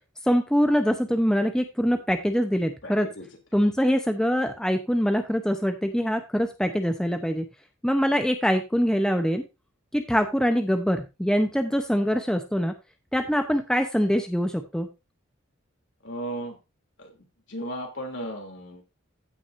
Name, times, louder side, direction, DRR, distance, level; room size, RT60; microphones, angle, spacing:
voice 1, 0.2-3.1 3.5-7.5 7.8-9.4 9.9-12.8 13.1-14.9, equal, 5° left, 6 dB, 0.7 m, -24 dB
voice 2, 2.8-3.3 16.0-16.6 17.0-17.2 17.5-18.8, right 1 dB, 65° left, 3 dB, 3.0 m, -35 dB
15.5 x 6.1 x 2.6 m, 0.25 s
head